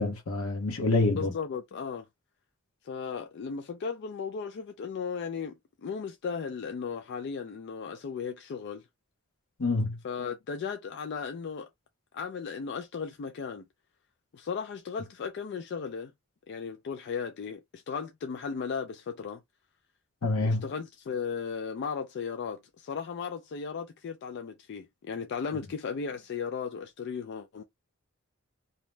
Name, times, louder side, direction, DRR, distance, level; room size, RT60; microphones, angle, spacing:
voice 1, 0.0-1.3 9.6-10.0 20.2-20.6, left 2 dB, 75° left, 0.9 m, -26 dB
voice 2, 1.1-2.1 2.8-8.8 10.0-11.7 12.1-13.6 14.3-16.1 16.5-19.4 20.4-27.6, left 6 dB, 55° left, 0.3 m, -36 dB
2.7 x 2.0 x 3.2 m
head